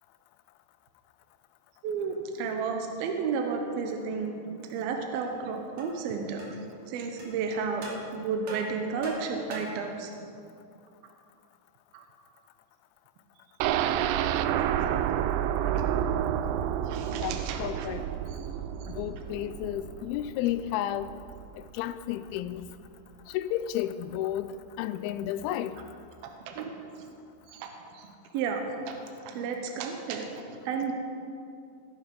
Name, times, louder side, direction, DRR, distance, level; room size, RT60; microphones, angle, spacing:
voice 1, 1.8-4.4 4.7-6.4 6.9-10.1 11.9-12.1 14.1-14.4 15.7-15.8 16.8-17.9 18.3-18.5 18.8-18.9 26.2-26.7 27.5-28.1 28.3-29.0 29.3-30.3 30.7-30.9, right 5 dB, 75° right, 3 dB, 2.7 m, -32 dB
sound 1, 5.2-5.3 5.8-6.0 6.4-6.5 7.2-7.3 7.8-8.0 8.5-9.9, right 2 dB, 45° right, 3.4 m, -40 dB
sound 2, 13.6-21.5 21.8-21.9 22.3-22.4, right 10 dB, 90° right, 2.7 m, -29 dB
voice 2, 17.1-18.0 18.9-21.1 21.7-22.7 23.3-25.8, left 12 dB, 85° left, 12 dB, 2.3 m, -32 dB
19.0 x 9.0 x 5.4 m, 2.4 s
omnidirectional pair, 4.7 m